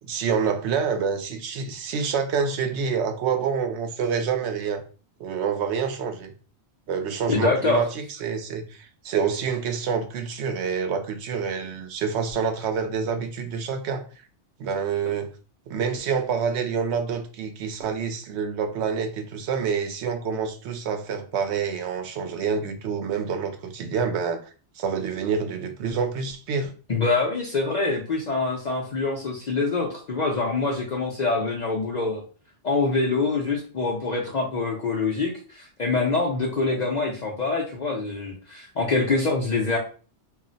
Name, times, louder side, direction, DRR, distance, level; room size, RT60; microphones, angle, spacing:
voice 1, 0.0-4.8 5.2-6.3 6.9-14.0 14.6-15.3 15.7-24.5 24.8-26.7, right 6 dB, 75° right, 0.8 m, -27 dB
voice 2, 7.3-7.8 26.9-32.2 32.6-39.8, left 3 dB, 50° left, 0.5 m, -25 dB
2.4 x 2.0 x 3.8 m
omnidirectional pair, 1.2 m